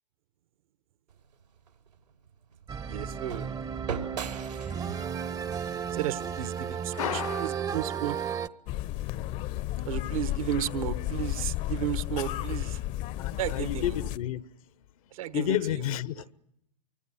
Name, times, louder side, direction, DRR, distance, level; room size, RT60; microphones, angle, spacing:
sound 1, 1.1-7.2, right 6 dB, 85° right, 3.7 m, -42 dB
sound 2, 2.7-8.5, right 7 dB, 20° right, 0.9 m, -34 dB
voice 1, 2.9-3.5 5.9-8.2 9.8-12.8 13.4-14.0 15.1-15.9, right 11 dB, 60° right, 1.3 m, -33 dB
voice 2, 4.6-4.9 6.9-7.6 13.2-14.5 15.2-16.3, left 11 dB, 60° left, 1.1 m, -32 dB
sound 3, 8.7-14.2, left 14 dB, 35° left, 0.9 m, -33 dB
25.0 x 24.5 x 7.8 m
figure-of-eight pair, 105°, 21 cm